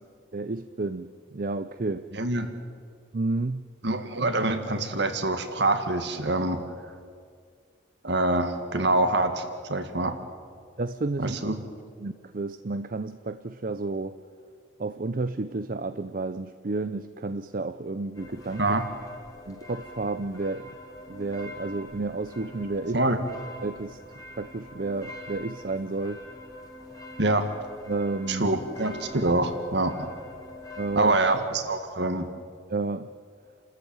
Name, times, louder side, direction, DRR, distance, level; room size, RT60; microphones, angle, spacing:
voice 1, 0.3-2.1 3.1-3.7 10.8-11.4 12.0-14.2 14.8-18.7 19.5-20.7 21.1-23.0 23.6-24.0 24.4-26.2 27.9-28.6 30.8-31.2 32.7-33.1, right 3 dB, 45° right, 11 dB, 0.6 m, -31 dB
voice 2, 2.1-2.5 3.8-6.6 8.0-10.1 11.2-11.5 18.6-18.8 22.9-23.2 27.2-27.5 28.3-30.1 31.0-32.3, right 2 dB, 65° right, 7 dB, 2.0 m, -25 dB
sound 1, 18.1-31.4, left 2 dB, 20° left, 2.4 m, -45 dB
29.5 x 13.5 x 8.9 m, 2.1 s
head